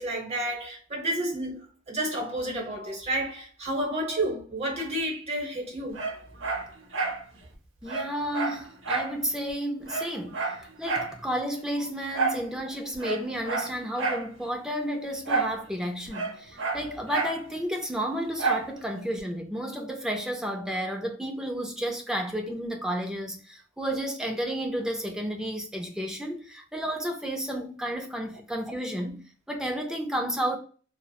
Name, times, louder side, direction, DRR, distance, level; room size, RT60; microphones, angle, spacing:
voice 1, 0.0-6.1, right 1 dB, 35° right, 0.8 m, -31 dB
Dog, 5.9-7.2 7.5-7.6 7.9-9.2 9.5-9.6 9.9-11.2 12.1-12.5 12.9-14.3 15.2-15.6 15.8-17.4 18.4-18.7 19.2-19.3, right 4 dB, 75° right, 0.6 m, -29 dB
voice 2, 7.8-30.6, equal, 5° right, 0.3 m, -32 dB
2.8 x 2.0 x 2.2 m
head